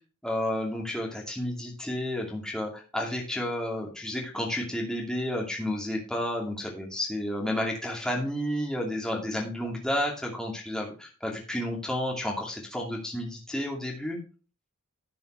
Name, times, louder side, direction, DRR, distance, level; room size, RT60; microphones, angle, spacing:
voice 1, 0.2-14.2, left 1 dB, 5° left, -2 dB, 2.5 m, -31 dB
12.0 x 7.9 x 3.4 m, 0.35 s
head